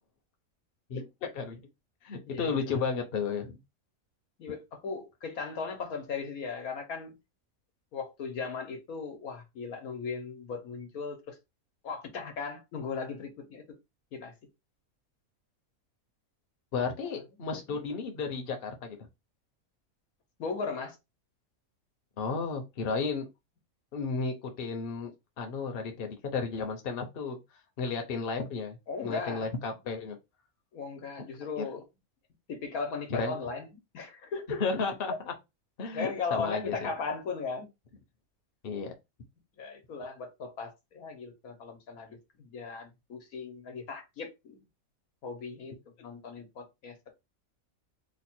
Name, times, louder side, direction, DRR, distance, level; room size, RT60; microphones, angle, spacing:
voice 1, 0.9-1.6 2.0-3.6 16.7-19.0 22.2-23.3 23.9-25.1 25.4-27.4 27.8-30.2 31.4-31.6 33.2-33.3 34.6-35.3 35.8-36.9 38.6-38.9, left 5 dB, 45° left, 0.9 m, -33 dB
voice 2, 2.3-2.8 4.4-7.1 7.9-11.4 11.8-13.6 14.1-14.3 17.1-17.2 17.7-17.8 20.4-21.0 28.9-29.5 30.7-31.8 32.5-34.6 35.8-37.7 39.6-44.6 45.2-47.1, left 4 dB, 80° left, 1.4 m, -37 dB
3.2 x 2.3 x 4.3 m
omnidirectional pair, 1.5 m